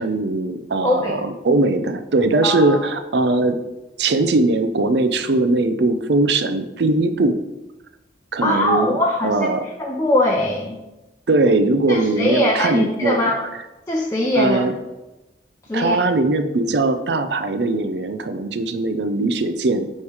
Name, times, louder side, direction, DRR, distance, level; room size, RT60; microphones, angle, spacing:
voice 1, 0.0-3.6 4.0-7.4 8.3-9.0 9.2-9.7 11.3-13.2 14.4-14.7 15.7-19.9, right 2 dB, 70° right, 10 dB, 0.5 m, -20 dB
voice 2, 0.8-1.1 2.4-2.8 8.4-9.3 9.8-10.8 11.9-13.4 13.9-14.6 15.7-16.0, left 1 dB, 15° left, -2 dB, 0.6 m, -21 dB
8.4 x 3.2 x 4.8 m, 1.0 s
head